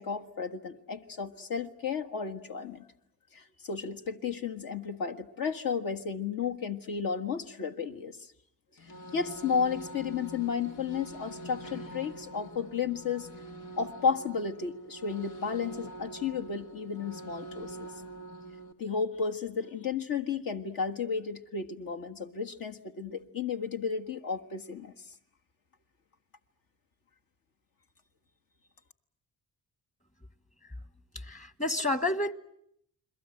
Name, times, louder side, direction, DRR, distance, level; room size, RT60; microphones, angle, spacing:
voice 1, 0.0-2.9 3.3-8.3 9.1-13.3 13.8-17.9 18.8-24.9, left 6 dB, 65° left, 5 dB, 1.6 m, -33 dB
sound 1, 8.8-18.7, right 1 dB, 90° left, 1.9 m, -44 dB
voice 2, 31.1-32.3, left 2 dB, 20° left, 13 dB, 1.4 m, -30 dB
29.5 x 22.0 x 7.8 m, 0.74 s
cardioid pair, 85°, 37 cm